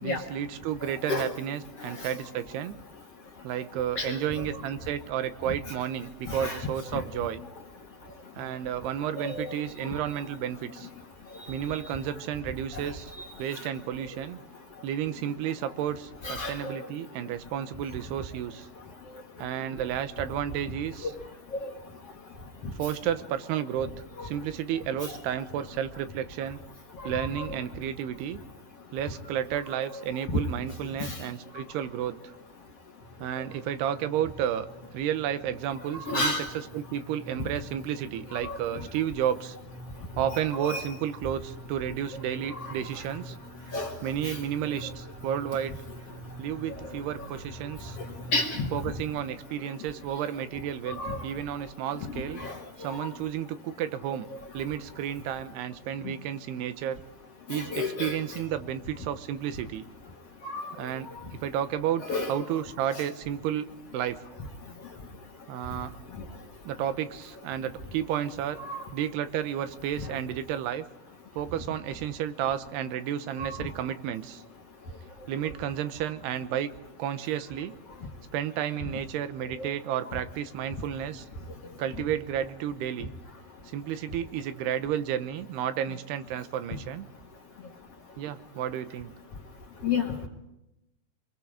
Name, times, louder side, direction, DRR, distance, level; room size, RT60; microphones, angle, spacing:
voice 1, 0.0-2.8 3.4-7.4 8.4-10.9 11.5-13.1 13.4-14.4 14.8-18.7 19.4-21.1 22.7-23.9 24.2-26.6 27.0-28.4 28.9-32.2 33.2-34.7 34.9-36.3 36.7-39.6 40.2-43.4 44.0-45.8 46.4-48.0 48.7-52.4 52.8-54.3 54.5-57.0 57.5-59.8 60.8-61.1 61.4-62.0 62.3-63.7 63.9-64.2 65.5-65.9 66.6-68.6 68.9-70.9 71.4-74.4 75.3-76.7 77.0-77.7 78.3-81.3 81.8-83.1 83.7-87.1 88.2-89.1, right 10 dB, 85° right, 11 dB, 3.1 m, -32 dB
voice 2, 6.3-6.6 9.2-9.5 13.2-13.3 16.2-16.7 21.6-21.7 27.1-27.5 30.3-30.4 31.0-31.1 36.1-36.5 38.4-38.6 40.3-40.8 42.6-42.7 43.7-43.9 44.2-44.4 48.3-48.7 51.0-51.2 52.4-52.6 57.5-58.2 60.4-60.7 62.0-62.3 68.7-68.8 73.4-73.5 89.8-90.0, left 3 dB, 50° left, 2 dB, 2.1 m, -30 dB
sound 1, 33.0-49.0, right 1 dB, 55° right, 5.6 m, -46 dB
26.5 x 21.5 x 5.0 m, 0.92 s
omnidirectional pair, 4.6 m